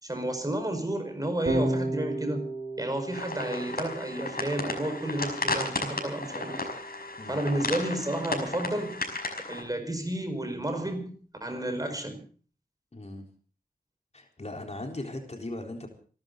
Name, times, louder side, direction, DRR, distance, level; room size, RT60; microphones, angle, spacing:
voice 1, 0.0-2.5 2.8-6.7 7.3-9.0 9.5-11.1 11.4-12.2, right 1 dB, 20° right, 5.1 m, -31 dB
Electric guitar / Bass guitar, 1.5-7.9, right 1 dB, 70° right, 7.1 m, -35 dB
sound 1, 3.1-9.6, left 2 dB, 65° left, 5.6 m, -34 dB
voice 2, 12.9-13.2 14.1-15.9, left 2 dB, 45° left, 4.0 m, -38 dB
28.0 x 12.5 x 3.9 m
wide cardioid pair, 80°, 16 cm